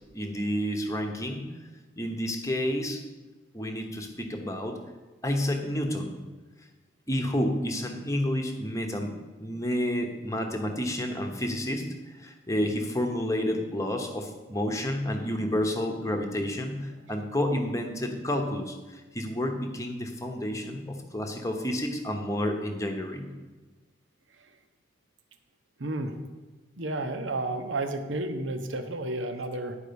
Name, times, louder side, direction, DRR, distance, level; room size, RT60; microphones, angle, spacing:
voice 1, 0.1-1.4 2.0-3.0 3.5-4.8 5.2-6.1 7.1-9.1 9.4-11.9 12.2-23.3, left 1 dB, 15° left, 3 dB, 0.9 m, -30 dB
voice 2, 25.8-26.1 26.8-29.8, right 2 dB, 75° right, 7 dB, 0.9 m, -31 dB
10.5 x 4.8 x 6.9 m, 1.3 s
head